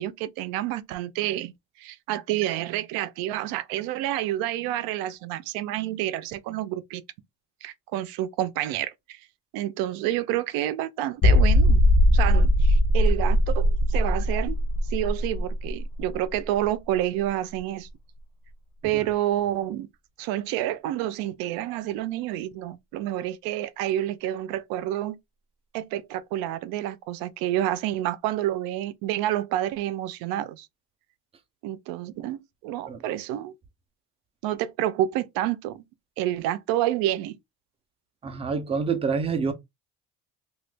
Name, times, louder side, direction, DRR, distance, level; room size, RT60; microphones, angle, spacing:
voice 1, 0.0-1.5 1.8-7.0 7.6-9.2 9.5-14.6 14.9-17.9 18.8-19.9 20.2-25.2 25.7-30.7 31.6-33.5 34.4-35.8 36.2-37.4, right 13 dB, 85° right, 0.6 m, -29 dB
sound 1, 11.2-16.7 17.0-17.1 17.6-17.7, left 1 dB, 40° left, 0.5 m, -20 dB
voice 2, 38.2-39.5, right 5 dB, 20° right, 0.4 m, -27 dB
2.9 x 2.4 x 3.3 m
cardioid pair, 170°, 35 cm